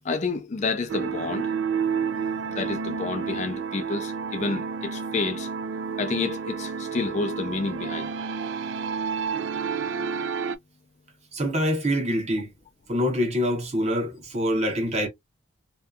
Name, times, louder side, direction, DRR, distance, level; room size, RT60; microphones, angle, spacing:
voice 1, 0.0-1.5 2.5-5.5 6.0-8.1, left 4 dB, 35° left, 0.4 m, -29 dB
sound 1, 0.9-10.6, right 6 dB, 60° right, 0.3 m, -30 dB
voice 2, 11.3-12.5 12.9-15.1, equal, 35° right, 0.8 m, -25 dB
2.7 x 2.3 x 2.3 m
head